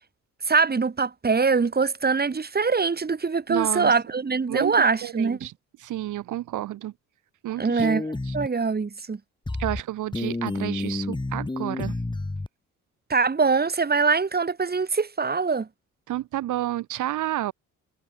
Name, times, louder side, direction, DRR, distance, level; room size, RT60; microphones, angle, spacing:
voice 1, 0.5-5.4 7.6-8.1 8.3-9.2 13.1-15.7, right 4 dB, 30° right, 6.5 m, -23 dB
voice 2, 3.5-3.9 4.5-4.8 5.0-5.5 5.8-6.9 7.4-7.9 8.3-8.4 9.6-11.9 16.1-17.5, right 14 dB, 80° right, 3.8 m, -30 dB
sound 1, 7.8-8.5 9.5-9.8 10.1-12.5, left 2 dB, 15° left, 5.8 m, -30 dB
cardioid pair, 90°, 30 cm